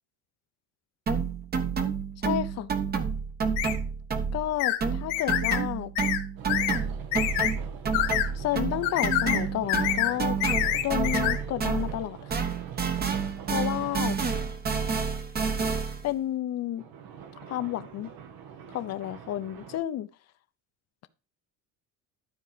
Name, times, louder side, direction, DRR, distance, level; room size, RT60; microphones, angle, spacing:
sound 1, 1.1-4.5 4.8-12.0 12.3-16.1, right 6 dB, 25° right, 1.2 m, -29 dB
voice 1, 2.2-2.7 4.3-5.9 8.3-10.4 10.8-12.2 13.5-14.2 16.0-16.8 17.5-18.1 18.7-20.1, left 12 dB, 45° left, 0.8 m, -31 dB
sound 2, 3.6-3.8 4.6-4.8 5.1-5.6 6.0-6.2 6.5-6.8 7.1-7.5 7.9-8.3 8.8-9.4 9.7-10.1 10.4-11.4, left 14 dB, 80° left, 1.4 m, -27 dB
sound 3, 6.4-14.6 16.8-19.8, right 8 dB, 65° right, 1.9 m, -44 dB
12.5 x 4.5 x 5.1 m
cardioid pair, 135°, 37 cm